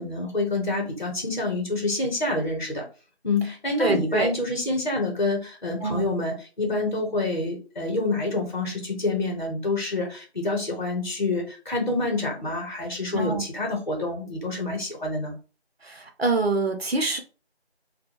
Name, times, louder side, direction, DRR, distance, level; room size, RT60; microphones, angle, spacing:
voice 1, 0.0-2.8 3.2-15.3, left 2 dB, 45° left, 0.9 m, -27 dB
voice 2, 3.8-4.3 5.8-6.1 13.1-13.4 15.8-17.2, right 3 dB, 70° right, 0.8 m, -25 dB
2.6 x 2.2 x 2.9 m
figure-of-eight pair, 175°, 32 cm